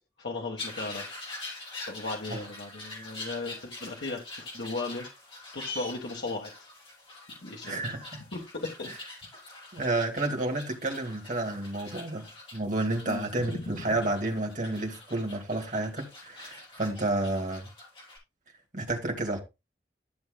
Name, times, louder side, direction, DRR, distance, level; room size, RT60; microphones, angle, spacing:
voice 1, 0.2-1.0 1.9-5.0 5.5-6.5 7.4-8.0 8.3-8.9 13.0-13.3 13.5-13.6, left 3 dB, 85° left, 1.5 m, -36 dB
sound 1, 0.6-18.2, left 2 dB, 30° left, 5.9 m, -44 dB
voice 2, 7.6-8.2 9.7-17.7 18.7-19.4, right 2 dB, 45° right, 2.3 m, -31 dB
14.0 x 7.1 x 2.3 m
head